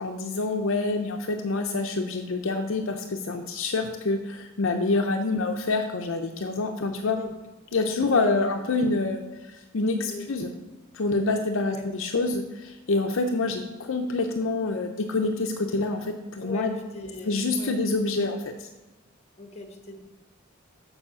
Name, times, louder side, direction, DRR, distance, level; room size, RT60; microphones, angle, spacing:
voice 1, 0.0-7.2 7.7-10.5 10.9-16.8 17.3-18.7, left 3 dB, 65° left, 5 dB, 0.6 m, -27 dB
voice 2, 6.8-7.3 8.1-8.5 10.0-10.6 11.6-11.9 16.4-17.7 19.4-20.1, left 1 dB, 30° left, 4 dB, 1.3 m, -40 dB
7.1 x 5.6 x 6.8 m, 1.1 s
head